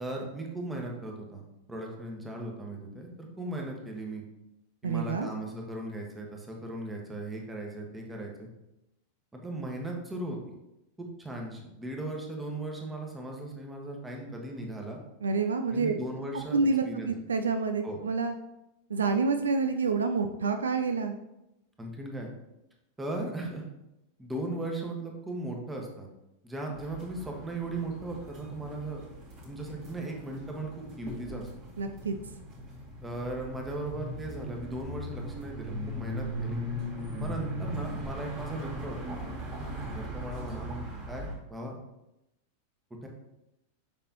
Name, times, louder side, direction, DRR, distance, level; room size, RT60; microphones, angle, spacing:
voice 1, 0.0-1.4 1.7-4.2 4.8-8.5 9.3-10.4 11.0-15.0 15.7-16.6 16.8-17.2 17.8-18.0 21.8-22.3 23.0-23.6 24.2-26.1 26.4-29.0 29.4-31.5 33.0-36.6 37.2-39.2 39.9-40.8 41.1-41.8 43.0-43.1, right 2 dB, 10° right, 0 dB, 1.4 m, -37 dB
voice 2, 4.8-5.3 15.2-15.9 16.5-18.3 18.9-21.1 31.8-32.1, right 4 dB, 70° right, 7 dB, 0.4 m, -28 dB
sound 1, 26.7-41.3, equal, 40° right, 2.2 m, -39 dB
7.2 x 5.5 x 2.9 m, 0.90 s
figure-of-eight pair, 90°, 0 cm